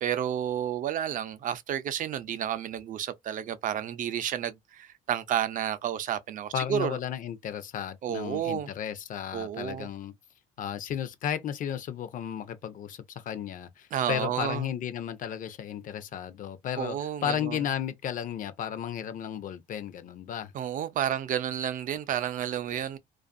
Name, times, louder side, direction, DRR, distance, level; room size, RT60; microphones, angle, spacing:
voice 1, 0.0-7.0 8.0-8.7 9.3-9.9 13.9-14.6 16.8-17.6 20.5-23.0, right 10 dB, 50° right, 0.5 m, -31 dB
voice 2, 6.5-10.1 10.6-20.5, left 9 dB, 50° left, 0.6 m, -34 dB
2.5 x 2.4 x 2.5 m
cardioid pair, 110°, 17 cm